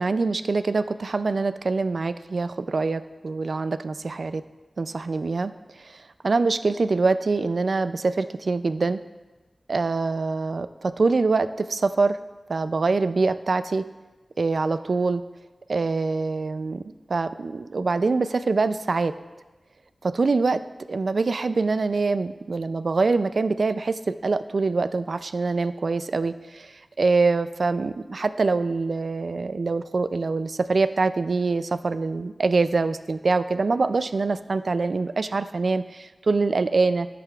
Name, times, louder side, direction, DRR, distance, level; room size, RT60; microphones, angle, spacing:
voice 1, 0.0-4.4 4.8-5.5 6.2-9.0 9.7-12.2 12.5-13.8 14.4-15.2 15.7-16.8 17.1-19.1 20.0-20.6 20.9-26.7 27.0-37.1, right 3 dB, 70° right, 12 dB, 0.3 m, -24 dB
13.5 x 7.5 x 2.4 m, 1.2 s
wide cardioid pair, 70°, 0 cm